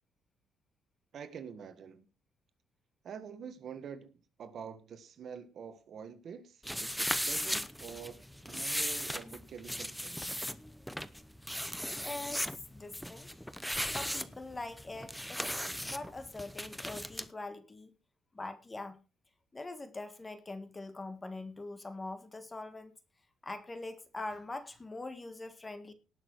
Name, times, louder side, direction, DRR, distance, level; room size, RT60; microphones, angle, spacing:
voice 1, 1.1-2.1 3.0-4.1 4.4-8.2 8.5-10.2, right 7 dB, 50° right, 1.6 m, -46 dB
sound 1, 6.6-17.3, equal, ahead, 0.8 m, -37 dB
voice 2, 12.0-13.3 13.9-15.4 15.8-17.9 18.3-19.0 19.5-22.9 23.4-25.9, left 2 dB, 15° left, 1.6 m, -43 dB
18.5 x 6.6 x 4.7 m
cardioid pair, 130°, 0 cm